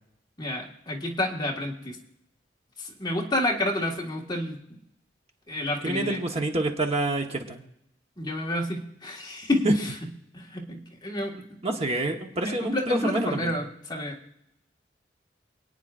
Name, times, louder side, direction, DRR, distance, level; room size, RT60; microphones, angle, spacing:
voice 1, 0.4-2.0 2.8-4.8 5.5-6.2 8.2-10.1 10.3-11.3 12.4-14.2, left 1 dB, 25° left, -1 dB, 1.7 m, -30 dB
voice 2, 5.8-7.6 11.6-13.5, right 2 dB, 35° right, 3 dB, 1.1 m, -27 dB
28.0 x 9.4 x 2.5 m, 0.78 s
head